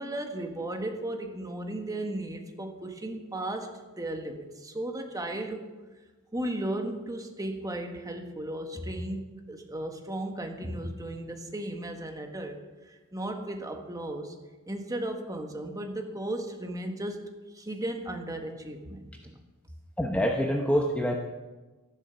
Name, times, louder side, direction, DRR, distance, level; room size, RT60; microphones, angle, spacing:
voice 1, 0.0-3.7 4.0-5.7 6.3-12.6 12.9-14.3 14.7-19.4, right 1 dB, 15° right, 4 dB, 1.5 m, -35 dB
voice 2, 20.0-21.2, equal, 5° left, 1 dB, 1.0 m, -26 dB
13.0 x 11.5 x 7.0 m, 1.2 s
head